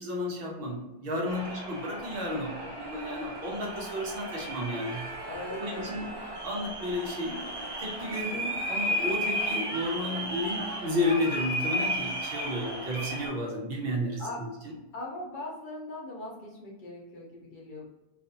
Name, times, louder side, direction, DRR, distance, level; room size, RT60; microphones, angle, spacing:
voice 1, 0.0-5.0 5.5-6.1 6.4-14.7, left 1 dB, 70° right, -1 dB, 0.9 m, -32 dB
sound 1, 1.3-13.3, equal, 30° right, 0.5 m, -34 dB
voice 2, 5.3-5.9 14.2-14.4 14.9-17.9, left 2 dB, 55° left, -3 dB, 0.8 m, -40 dB
2.4 x 2.4 x 2.6 m, 0.99 s
omnidirectional pair, 1.0 m